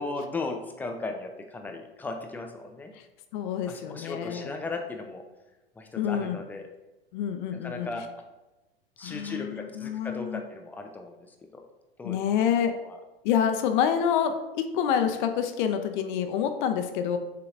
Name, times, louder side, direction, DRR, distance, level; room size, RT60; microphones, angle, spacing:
voice 1, 0.0-2.9 3.7-5.2 5.8-6.7 7.6-8.0 9.0-11.6 12.0-12.2 12.8-13.0, left 3 dB, 5° left, 4 dB, 0.3 m, -36 dB
voice 2, 3.3-4.5 6.0-6.4 7.1-7.9 9.0-10.4 12.0-12.7 13.2-17.2, left 8 dB, 50° left, 7 dB, 0.6 m, -27 dB
6.5 x 2.9 x 2.4 m, 1.0 s
hypercardioid pair, 95°, 31 cm